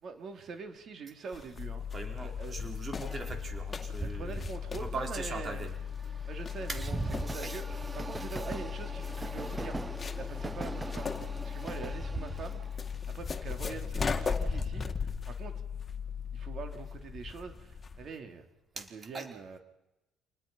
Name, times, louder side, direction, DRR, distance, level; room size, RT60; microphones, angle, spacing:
voice 1, 0.0-1.8 2.2-2.6 4.0-5.7 6.3-7.7 7.9-9.8 10.2-12.6 13.1-15.5 16.3-18.4 18.8-19.6, right 5 dB, 50° right, 5 dB, 3.7 m, -44 dB
sound 1, 1.3-18.1, left 4 dB, 30° left, 2.3 m, -39 dB
sound 2, 1.6-17.3, left 8 dB, 45° left, 0.8 m, -39 dB
voice 2, 1.9-5.8 6.7-6.8 7.4-7.9 18.8-18.9 19.1-19.3, right 3 dB, 35° right, 3 dB, 4.8 m, -41 dB
Train, 3.3-13.7, right 3 dB, 20° right, 0.7 m, -41 dB
28.5 x 20.5 x 5.8 m, 0.94 s
cardioid pair, 90°, 0 cm